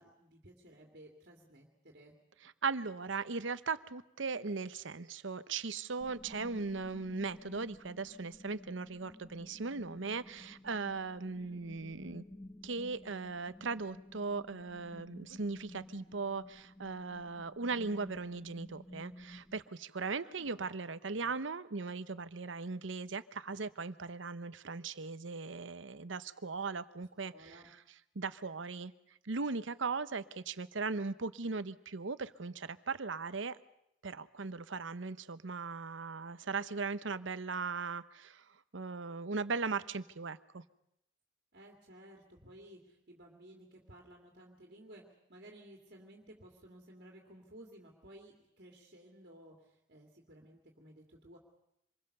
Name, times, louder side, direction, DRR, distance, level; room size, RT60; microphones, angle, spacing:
voice 1, 0.0-2.2 11.3-11.6 20.2-21.3 27.2-27.7 41.5-51.4, right 1 dB, 55° right, 1 dB, 2.6 m, -56 dB
voice 2, 2.4-12.2 12.6-27.6 28.1-28.9 29.2-33.6 34.0-40.6, right 4 dB, 70° right, 14 dB, 0.9 m, -38 dB
sound 1, 6.0-19.6, left 1 dB, 10° left, 1.0 m, -53 dB
26.5 x 22.0 x 6.8 m, 0.79 s
head